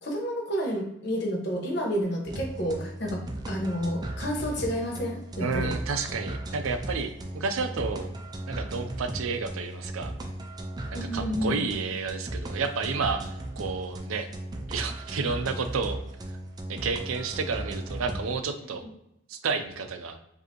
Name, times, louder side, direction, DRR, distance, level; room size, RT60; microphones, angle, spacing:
voice 1, 0.0-5.7 10.9-11.6 18.8-18.9, equal, 55° left, 0 dB, 1.0 m, -30 dB
sound 1, 2.3-18.3, right 1 dB, 20° right, 0.3 m, -36 dB
voice 2, 5.4-8.1 8.5-10.1 11.1-13.2 13.6-14.3 14.7-16.0 16.7-18.9 19.3-20.2, right 4 dB, 85° right, 8 dB, 0.5 m, -31 dB
4.9 x 2.6 x 2.9 m, 0.83 s
head